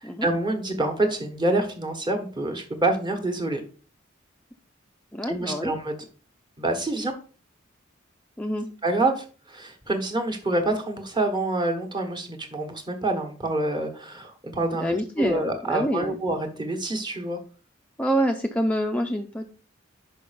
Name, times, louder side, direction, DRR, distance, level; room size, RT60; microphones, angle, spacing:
voice 1, 0.0-3.6 5.3-5.9 6.6-7.1 8.8-17.4, right 2 dB, 25° right, 3 dB, 1.3 m, -27 dB
voice 2, 5.1-5.7 8.4-8.7 14.7-16.2 18.0-19.5, equal, 5° left, 2 dB, 0.4 m, -26 dB
5.5 x 5.4 x 5.0 m, 0.39 s
head